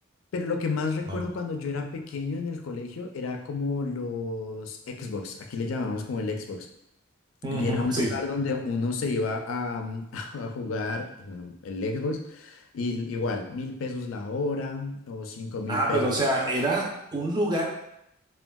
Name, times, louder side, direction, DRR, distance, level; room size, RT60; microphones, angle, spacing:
voice 1, 0.3-6.7 7.5-16.1, left 3 dB, 80° left, 5 dB, 0.4 m, -31 dB
voice 2, 7.4-8.2 15.7-17.6, right 1 dB, 20° right, -2 dB, 0.5 m, -26 dB
3.5 x 2.3 x 2.2 m, 0.80 s
head